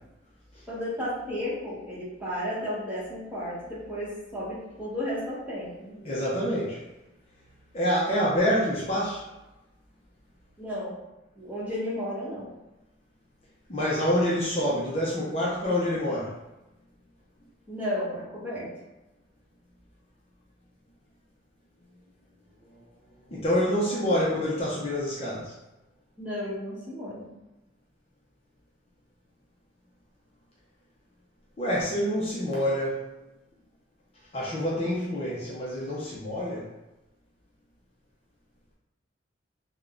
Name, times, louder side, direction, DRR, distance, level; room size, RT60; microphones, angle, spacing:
voice 1, 0.7-6.0 10.6-11.0 11.3-12.5 17.7-18.7 26.2-27.3, left 1 dB, 10° right, -9 dB, 1.1 m, -33 dB
voice 2, 6.0-6.8 7.7-9.3 13.7-16.4 23.3-25.5 31.6-33.1 34.3-36.7, equal, 30° left, -7 dB, 0.6 m, -27 dB
3.5 x 2.2 x 3.6 m, 0.99 s
head